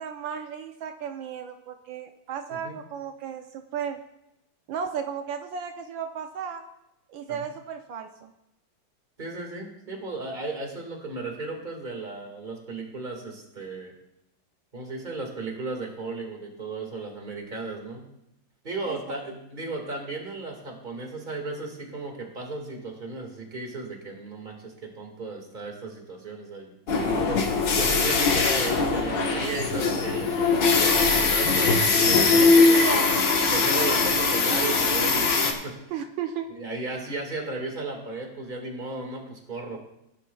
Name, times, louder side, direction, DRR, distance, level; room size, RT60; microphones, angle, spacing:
voice 1, 0.0-4.0 4.7-6.6 7.1-8.3 18.8-19.0 27.0-27.4 32.7-33.1 35.9-36.5 36.9-37.0, right 7 dB, 80° right, 5 dB, 1.4 m, -34 dB
voice 2, 9.2-13.9 14.7-18.1 18.6-33.0 33.5-35.8 36.5-39.8, right 3 dB, 25° right, 1 dB, 2.0 m, -35 dB
sound 1, 26.9-35.5, left 4 dB, 65° left, 2.0 m, -21 dB
17.5 x 11.0 x 2.3 m, 0.86 s
omnidirectional pair, 2.1 m